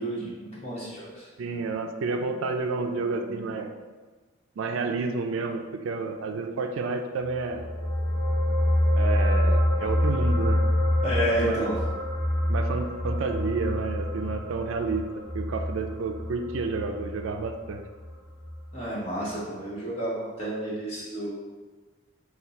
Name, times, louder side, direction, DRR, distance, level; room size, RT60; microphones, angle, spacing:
voice 1, 0.0-1.3 11.0-11.8 18.7-21.3, right 1 dB, 30° left, -7 dB, 1.2 m, -30 dB
voice 2, 1.4-3.7 4.6-7.7 9.0-10.6 11.4-11.7 12.5-15.1 15.3-17.8, right 4 dB, 75° right, 5 dB, 0.4 m, -30 dB
sound 1, 7.4-18.1 18.4-18.6, left 1 dB, 5° right, 1.5 m, -26 dB
4.2 x 2.3 x 4.0 m, 1.3 s
head